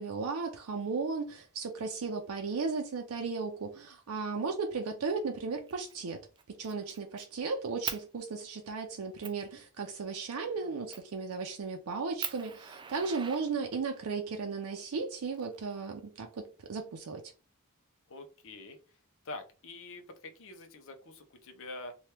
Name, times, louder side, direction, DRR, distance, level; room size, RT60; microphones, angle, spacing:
voice 1, 0.0-6.2 6.6-16.4 16.7-17.2, right 4 dB, 75° right, 0.5 m, -35 dB
Fire, 5.7-6.0 6.4-7.3 7.8-8.0 8.6-8.7 9.2-9.4 10.9-11.2 11.7-11.8 12.2-14.0 15.0-16.0, right 7 dB, 20° right, 0.3 m, -41 dB
voice 2, 13.0-13.7 18.1-18.8 19.2-22.0, left 2 dB, 60° left, 0.6 m, -46 dB
2.9 x 2.3 x 3.3 m
head